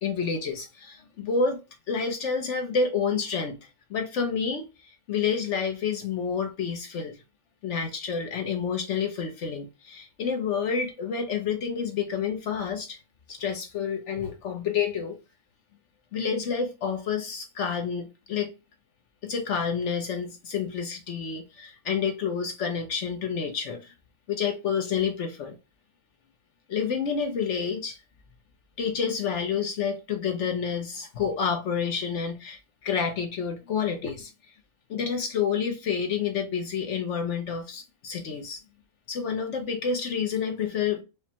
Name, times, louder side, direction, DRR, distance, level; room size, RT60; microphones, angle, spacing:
voice 1, 0.0-1.6 1.9-7.2 7.6-13.0 13.3-15.2 16.1-18.5 19.2-23.9 24.3-25.6 26.7-28.0 28.8-34.3 34.9-38.6 39.1-41.0, left 6 dB, 60° left, 0.8 m, -29 dB
5.1 x 2.1 x 2.8 m
omnidirectional pair, 1.7 m